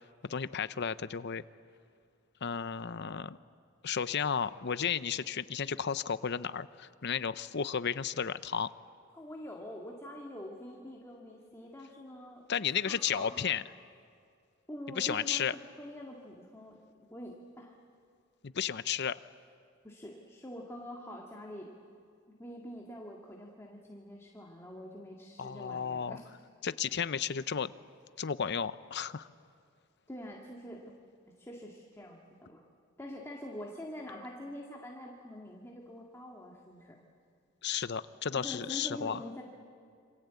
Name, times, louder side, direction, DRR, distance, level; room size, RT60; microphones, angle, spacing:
voice 1, 0.2-1.4 2.4-3.4 3.8-8.7 12.5-13.6 15.0-15.6 18.4-19.2 25.4-26.2 26.6-27.7 28.2-29.3 37.6-39.2, left 7 dB, 55° left, 14 dB, 0.7 m, -33 dB
voice 2, 9.1-12.5 12.9-13.4 14.7-15.5 15.8-16.8 17.1-17.7 19.8-21.7 22.3-26.3 30.1-30.9 31.4-32.6 33.0-37.0 38.3-39.4, left 1 dB, 15° left, -1 dB, 2.1 m, -45 dB
27.5 x 26.0 x 8.3 m, 2.3 s
head